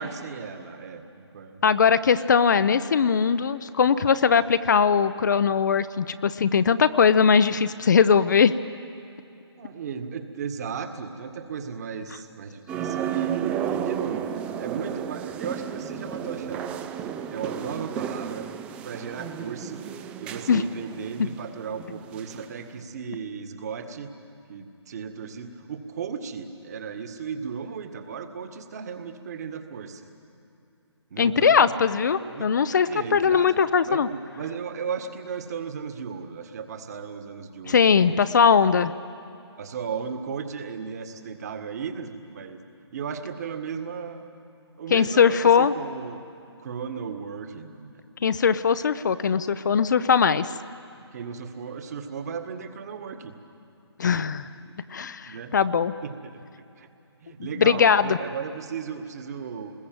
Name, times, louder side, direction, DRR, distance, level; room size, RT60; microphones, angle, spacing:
voice 1, 0.0-1.6 9.6-16.9 17.3-18.5 18.8-19.8 20.2-24.1 24.5-30.1 31.1-31.7 32.3-32.5 32.9-38.1 39.6-42.6 42.9-44.3 44.8-46.2 46.6-48.0 51.1-53.3 54.6-55.5 56.0-56.9 57.2-59.7, right 6 dB, 35° right, 7 dB, 2.0 m, -36 dB
voice 2, 1.6-8.5 20.5-20.6 31.2-34.1 37.7-38.9 44.9-45.7 48.2-50.5 54.0-54.5 54.9-55.9 57.6-58.2, left 6 dB, 40° left, 14 dB, 0.7 m, -20 dB
sound 1, 12.7-22.5 22.8-22.9, right 9 dB, 10° right, 0.5 m, -33 dB
28.5 x 21.0 x 7.8 m, 2.8 s
figure-of-eight pair, 150°, 15 cm